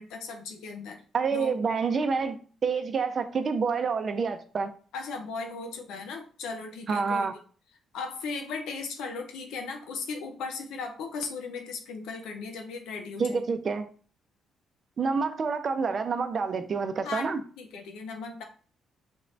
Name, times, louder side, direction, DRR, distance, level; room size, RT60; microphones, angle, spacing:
voice 1, 0.0-1.0 1.3-1.5 4.9-7.3 7.9-13.5 17.0-17.3 17.6-18.4, left 4 dB, 90° left, 4 dB, 0.7 m, -37 dB
voice 2, 1.1-4.7 6.9-7.3 13.2-13.9 15.0-17.4, right 5 dB, 45° right, 8 dB, 0.6 m, -28 dB
4.3 x 2.6 x 3.2 m, 0.41 s
cardioid pair, 90°, 0 cm